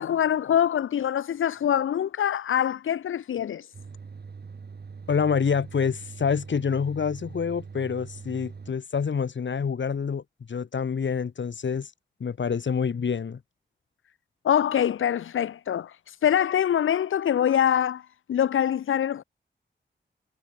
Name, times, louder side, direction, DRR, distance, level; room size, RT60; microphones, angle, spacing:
voice 1, 0.0-3.7 14.4-19.2, left 9 dB, 85° left, 0.6 m, -24 dB
sound 1, 3.7-8.7, right 5 dB, 55° right, 1.6 m, -42 dB
voice 2, 5.1-11.9 12.2-13.4, left 6 dB, 70° left, 1.8 m, -27 dB
cardioid pair, 55°, 20 cm